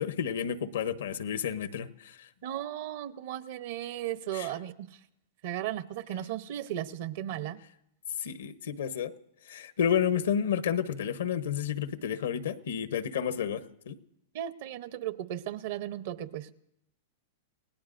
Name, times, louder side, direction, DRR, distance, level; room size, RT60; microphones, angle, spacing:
voice 1, 0.0-2.3 4.3-4.5 8.2-9.1 9.5-14.0, left 8 dB, 80° left, 13 dB, 0.9 m, -31 dB
voice 2, 2.4-4.9 5.4-7.6 14.3-16.5, right 12 dB, 60° right, 14 dB, 0.7 m, -36 dB
29.0 x 17.5 x 2.6 m, 0.79 s
hypercardioid pair, 125°, 0 cm